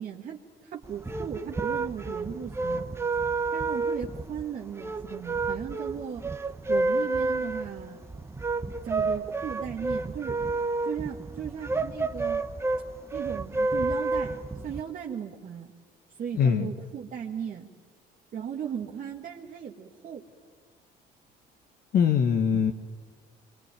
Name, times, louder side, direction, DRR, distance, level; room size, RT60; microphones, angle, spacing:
voice 1, 0.0-2.9 3.5-6.3 6.7-8.0 8.8-10.4 10.8-12.4 13.1-15.7 16.1-17.7 18.3-20.3, right 8 dB, 50° right, 0 dB, 1.8 m, -37 dB
sound 1, 0.8-14.8, right 3 dB, 15° right, 1.2 m, -30 dB
voice 2, 16.4-16.7 21.9-22.7, left 7 dB, 60° left, 6 dB, 1.4 m, -22 dB
26.0 x 23.5 x 9.1 m, 1.6 s
cardioid pair, 110°, 17 cm